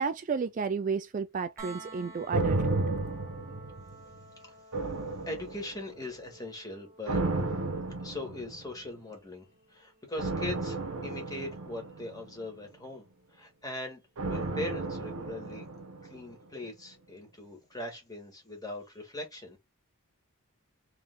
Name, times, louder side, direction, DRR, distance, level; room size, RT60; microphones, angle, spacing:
voice 1, 0.0-2.8, right 5 dB, 35° right, 0.3 m, -32 dB
sound 1, 1.6-13.4 15.3-15.4, right 2 dB, 15° right, 1.3 m, -53 dB
sound 2, 2.3-4.2 4.7-6.0 7.1-8.8 10.2-12.6 14.2-16.3 16.6-16.7, right 2 dB, 75° right, 0.9 m, -33 dB
voice 2, 5.3-7.2 8.0-15.6 16.0-19.6, left 1 dB, 15° left, 1.7 m, -40 dB
3.5 x 3.3 x 3.7 m
head